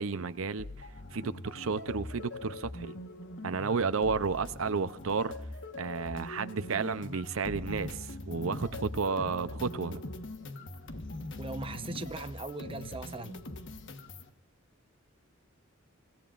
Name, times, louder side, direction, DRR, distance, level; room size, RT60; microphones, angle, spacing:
voice 1, 0.0-2.9 3.4-5.5 5.8-10.0, right 4 dB, 75° right, 0.7 m, -32 dB
sound 1, 0.6-14.3, left 2 dB, 60° left, 1.4 m, -42 dB
voice 2, 11.4-13.5, right 2 dB, 25° right, 0.9 m, -39 dB
25.0 x 17.5 x 2.6 m
head